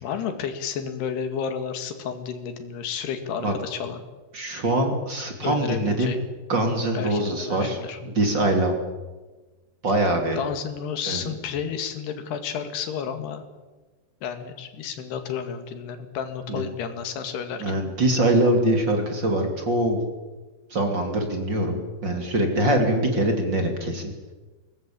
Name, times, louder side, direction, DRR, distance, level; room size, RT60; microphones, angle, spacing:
voice 1, 0.0-4.0 5.4-6.3 7.0-8.0 10.3-13.4 14.2-17.8, left 7 dB, 70° left, 8 dB, 3.9 m, -31 dB
voice 2, 4.3-6.1 6.5-8.8 9.8-10.4 11.1-11.3 16.5-16.7 17.6-20.0 20.7-24.1, right 1 dB, 30° right, 4 dB, 2.8 m, -23 dB
22.0 x 19.0 x 8.7 m, 1.2 s
omnidirectional pair, 4.9 m